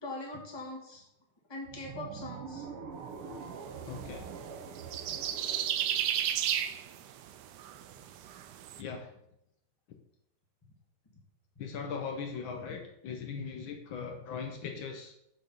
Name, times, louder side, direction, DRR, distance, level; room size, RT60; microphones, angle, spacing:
voice 1, 0.0-1.0 1.5-2.7, left 2 dB, 15° left, -2 dB, 1.5 m, -41 dB
sound 1, 1.6-6.9, right 5 dB, 90° right, 1.8 m, -45 dB
sound 2, 3.6-8.8, right 10 dB, 75° right, 1.0 m, -34 dB
voice 2, 3.8-4.3 8.8-9.1 11.6-15.1, left 5 dB, 70° left, 4 dB, 1.6 m, -39 dB
6.3 x 6.0 x 5.2 m, 0.78 s
omnidirectional pair, 2.3 m